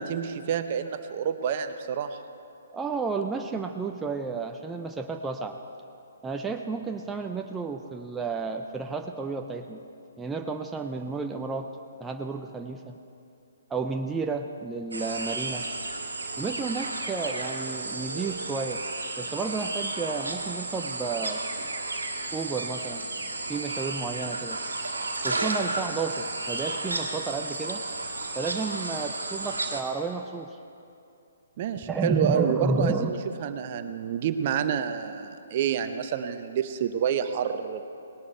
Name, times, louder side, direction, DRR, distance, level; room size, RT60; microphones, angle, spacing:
voice 1, 0.0-2.2 31.6-37.8, right 8 dB, 45° right, 9 dB, 0.8 m, -28 dB
voice 2, 2.7-5.6 6.2-9.8 10.2-11.7 12.0-13.0 13.7-15.7 16.4-18.8 19.2-21.4 22.3-23.1 23.5-24.6 25.2-27.8 28.3-30.6 31.9-33.1, right 4 dB, 10° right, 4 dB, 0.5 m, -31 dB
sound 1, 14.9-29.8, right 2 dB, 85° right, 1.6 m, -33 dB
19.0 x 11.5 x 4.4 m, 2.6 s
figure-of-eight pair, 135°, 0 cm